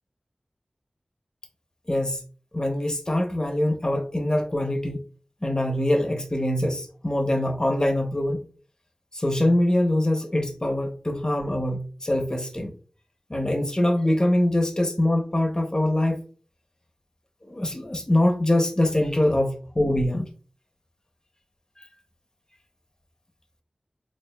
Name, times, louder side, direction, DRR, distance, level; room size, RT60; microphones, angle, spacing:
voice 1, 1.9-2.2 2.5-5.0 5.4-8.4 9.1-12.7 13.3-16.2 17.4-20.3 21.8-21.9, left 1 dB, 30° left, 4 dB, 0.7 m, -23 dB
4.6 x 2.7 x 2.2 m, 0.40 s
wide cardioid pair, 45°, 2 cm